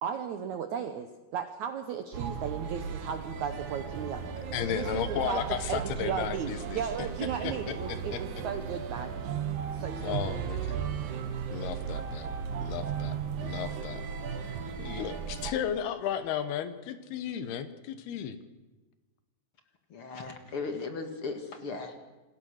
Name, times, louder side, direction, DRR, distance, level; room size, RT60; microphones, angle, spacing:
voice 1, 0.0-4.2 4.7-5.4 5.7-9.1 9.7-10.4, right 7 dB, 75° right, 8 dB, 1.8 m, -35 dB
sound 1, 2.1-15.5, right 7 dB, 60° right, 2.6 m, -36 dB
voice 2, 4.5-7.1 7.4-8.2 10.0-10.8 11.5-12.3 12.6-13.2 13.4-14.0 14.8-18.4, left 9 dB, 75° left, 11 dB, 3.1 m, -34 dB
voice 3, 19.9-22.0, left 4 dB, 45° left, 6 dB, 2.0 m, -37 dB
27.5 x 21.0 x 6.5 m, 1.2 s
omnidirectional pair, 4.7 m